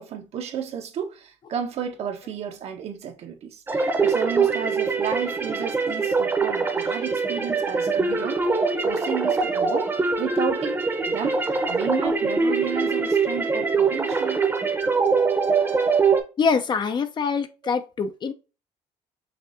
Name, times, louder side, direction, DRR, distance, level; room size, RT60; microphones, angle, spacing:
voice 1, 0.0-8.4 8.8-9.9 10.2-14.5, right 8 dB, 60° right, 1.0 m, -32 dB
sound 1, 3.7-16.2, right 4 dB, 20° right, 0.9 m, -23 dB
voice 2, 16.4-18.3, left 5 dB, 40° left, 0.6 m, -24 dB
5.9 x 2.6 x 2.6 m
cardioid pair, 120°, 12 cm